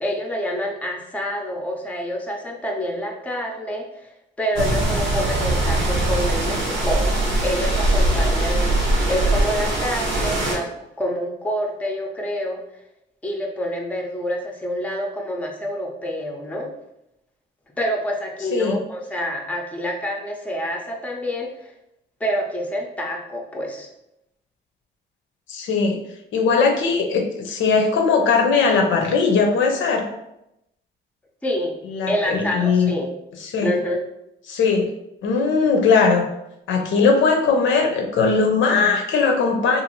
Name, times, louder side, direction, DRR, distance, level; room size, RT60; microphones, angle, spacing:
voice 1, 0.0-4.1 4.4-7.0 7.4-8.8 9.1-10.7 11.0-12.6 13.2-16.7 17.8-21.7 22.2-23.9 31.4-31.8 32.0-33.1 33.6-34.0, equal, 5° left, 1 dB, 0.5 m, -27 dB
sound 1, 4.6-10.6, right 1 dB, 80° right, 0.8 m, -21 dB
voice 2, 25.5-26.0 26.3-30.0 31.8-32.9 33.4-33.7 34.5-34.9 35.2-36.3 36.7-39.8, left 4 dB, 75° left, 2 dB, 0.6 m, -19 dB
2.6 x 2.4 x 2.9 m, 0.83 s
cardioid pair, 90°, 20 cm